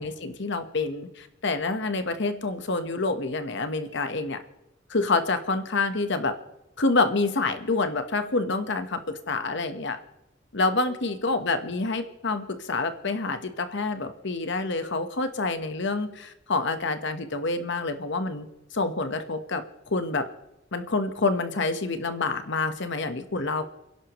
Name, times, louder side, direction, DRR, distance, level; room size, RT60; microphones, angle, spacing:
voice 1, 0.0-4.4 4.9-6.3 6.8-10.0 10.5-18.5 18.7-19.6 19.9-20.2 20.7-23.6, left 3 dB, 60° left, 8 dB, 1.2 m, -27 dB
29.5 x 11.0 x 3.1 m, 0.90 s
head